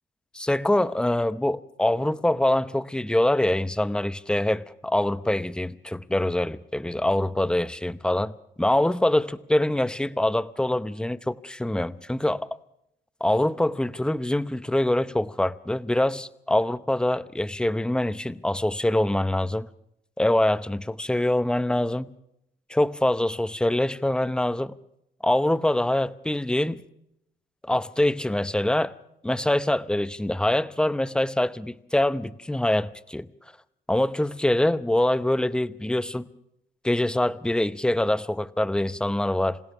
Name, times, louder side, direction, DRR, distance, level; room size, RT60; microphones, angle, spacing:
voice 1, 0.3-8.3 8.6-12.5 13.2-19.7 20.2-22.1 22.7-24.7 25.2-26.8 27.6-28.9 29.2-33.3 33.9-36.3 36.8-39.6, left 1 dB, 5° left, 0.8 m, -24 dB
27.5 x 16.5 x 6.0 m
cardioid pair, 90°, 20 cm